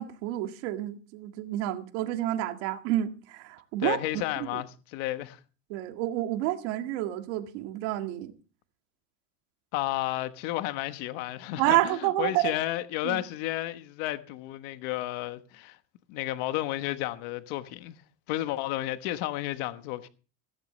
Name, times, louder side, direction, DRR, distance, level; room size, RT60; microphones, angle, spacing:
voice 1, 0.0-4.2 4.5-4.6 5.7-8.3 11.6-12.6 13.0-13.2, right 14 dB, 90° right, 2.0 m, -29 dB
voice 2, 3.8-5.4 9.7-15.8 16.1-18.0 18.3-20.1, left 15 dB, 75° left, 1.2 m, -32 dB
16.5 x 14.5 x 3.2 m
cardioid pair, 160°, 34 cm